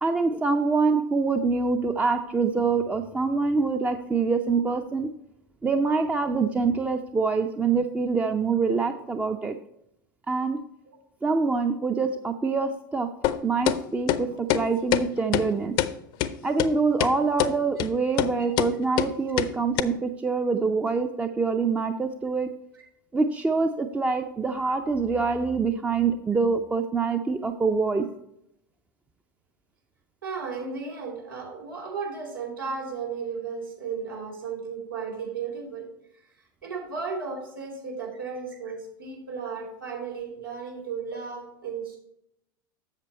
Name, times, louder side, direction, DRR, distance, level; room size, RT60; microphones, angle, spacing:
voice 1, 0.0-5.1 5.6-9.6 10.3-10.6 11.2-13.1 13.4-15.8 16.4-22.5 23.1-28.1, right 4 dB, 10° right, 7 dB, 0.4 m, -25 dB
sound 1, 13.2-13.4 13.7-13.8 14.1-14.2 14.5-14.6 14.9-15.0 15.3-15.5 15.8-15.9 16.2-16.3 16.6-16.7 17.0-17.1 17.4-17.5 17.8-17.9 18.2-18.3 18.6-18.7 19.0-19.1 19.4-19.5 19.8-19.9, left 13 dB, 40° left, 0.5 m, -23 dB
voice 2, 30.2-35.9 36.6-42.0, right 5 dB, 80° right, -3 dB, 3.3 m, -34 dB
8.0 x 6.7 x 4.3 m, 0.79 s
figure-of-eight pair, 80°, 11 cm